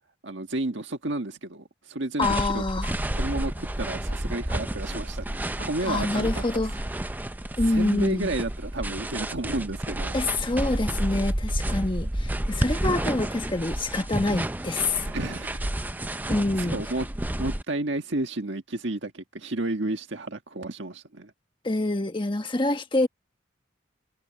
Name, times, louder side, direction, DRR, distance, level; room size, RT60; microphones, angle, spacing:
voice 1, 0.2-2.6 3.2-6.6 7.7-10.1 15.0-15.7 16.0-17.1 17.4-21.3, right 2 dB, 60° right, 1.7 m, -32 dB
voice 2, 2.2-2.9 5.8-6.7 7.6-8.3 10.1-15.0 16.3-16.8 21.6-23.1, left 2 dB, 25° left, 1.3 m, -26 dB
sound 1, 2.2-17.6, right 1 dB, 10° right, 0.5 m, -30 dB
head